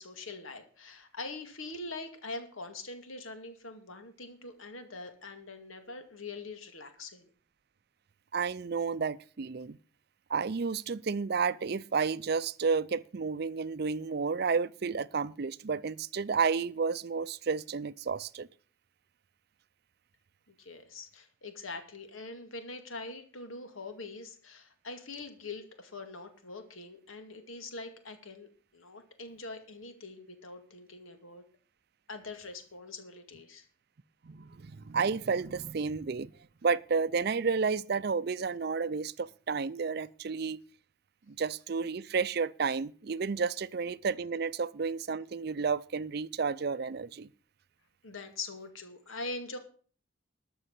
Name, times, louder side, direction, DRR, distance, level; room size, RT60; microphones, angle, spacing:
voice 1, 0.0-7.3 20.5-31.4 32.1-33.6 48.0-49.6, left 3 dB, 90° left, 2.3 m, -43 dB
voice 2, 8.3-9.8 10.3-18.5 34.2-36.3 36.6-40.6 41.3-47.3, right 5 dB, 50° right, 0.5 m, -31 dB
13.5 x 6.3 x 8.1 m
head